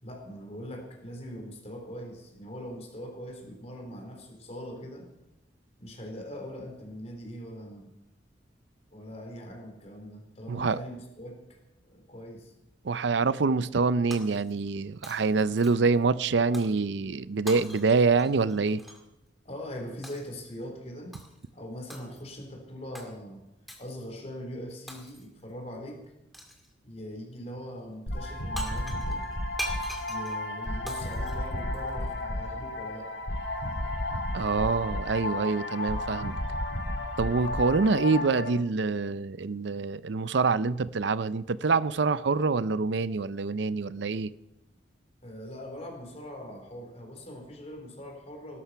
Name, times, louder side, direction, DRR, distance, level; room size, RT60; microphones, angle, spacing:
voice 1, 0.0-5.1 5.8-7.9 8.9-11.6 11.8-12.5 19.4-21.2 21.5-23.4 23.8-26.1 26.8-29.3 30.1-33.1 45.2-48.6, equal, 35° left, 3.9 m, -41 dB
voice 2, 10.5-10.8 12.8-18.8 34.3-36.4 37.2-44.3, right 4 dB, 70° right, 0.5 m, -26 dB
Shatter, 14.1-14.8 15.0-16.0 16.5-16.8 17.5-19.0 20.0-20.4 21.1-21.5 21.9-22.4 22.9-23.1 23.7-24.0 24.9-25.4 26.3-26.7 28.3-28.4 28.6-32.1, equal, ahead, 2.3 m, -42 dB
sound 1, 28.1-38.5, left 1 dB, 60° left, 2.0 m, -33 dB
18.5 x 12.5 x 5.7 m
head